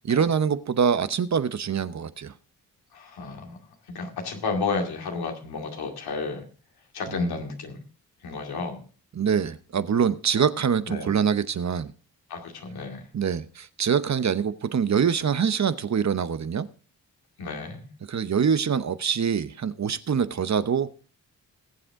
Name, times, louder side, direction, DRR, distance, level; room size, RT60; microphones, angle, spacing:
voice 1, 0.0-2.3 7.1-7.3 9.2-11.9 13.1-16.7 18.1-20.9, right 7 dB, 50° right, 0.8 m, -24 dB
voice 2, 2.9-3.6 3.8-6.4 6.9-7.8 8.2-8.8 10.9-11.1 12.3-13.1 17.4-17.9, left 4 dB, 90° left, 2.5 m, -32 dB
19.5 x 7.8 x 3.7 m
cardioid pair, 60°, 37 cm